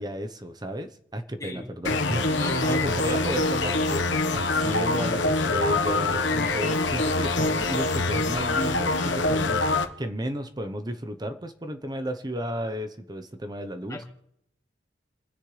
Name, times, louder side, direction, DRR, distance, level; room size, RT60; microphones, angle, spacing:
voice 1, 0.0-2.4 2.7-9.7 10.0-14.0, equal, 25° right, 8 dB, 0.9 m, -33 dB
voice 2, 1.4-1.7 2.4-3.2 13.9-14.0, left 1 dB, 20° left, 0 dB, 2.7 m, -36 dB
sound 1, 1.8-9.8, left 2 dB, 90° left, 1.3 m, -25 dB
29.0 x 10.0 x 3.3 m, 0.74 s
head